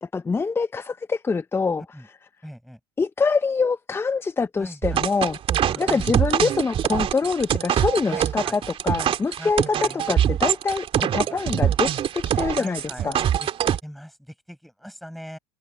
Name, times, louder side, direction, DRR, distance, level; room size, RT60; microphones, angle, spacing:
voice 1, 0.0-1.8 3.0-5.4 5.8-13.2, left 4 dB, 15° left, 0.9 m, -25 dB
voice 2, 2.4-2.8 4.6-5.1 5.7-6.3 7.2-7.3 8.1-8.6 9.4-10.2 11.0-11.4 12.5-13.1 13.4-13.5 13.8-15.4, equal, ahead, 6.0 m, -41 dB
sound 1, 4.8-13.8, right 10 dB, 40° right, 2.1 m, -23 dB
hypercardioid pair, 85°, 14 cm